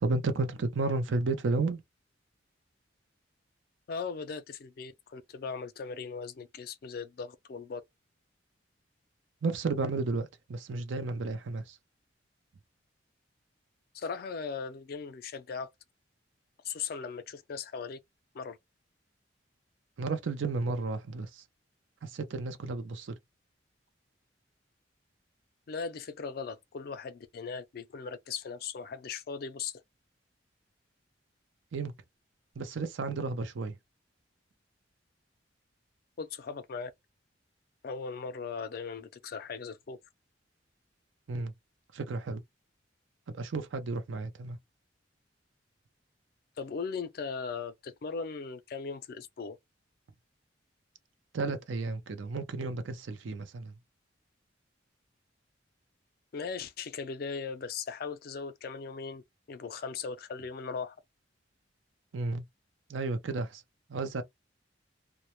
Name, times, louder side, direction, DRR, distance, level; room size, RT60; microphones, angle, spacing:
voice 1, 0.0-1.8 9.4-11.8 20.0-21.4 22.0-23.2 31.7-31.9 32.6-33.7 41.3-41.5 41.9-42.4 43.3-44.6 51.3-53.7 62.1-62.4 62.9-63.6 63.9-64.2, right 3 dB, 85° right, 0.5 m, -32 dB
voice 2, 3.9-7.8 13.9-15.7 16.6-18.0 18.3-18.6 25.7-29.7 36.2-36.9 37.8-40.0 46.6-49.6 56.3-59.2 59.5-61.0, left 5 dB, 50° left, 0.4 m, -38 dB
2.1 x 2.0 x 2.9 m
head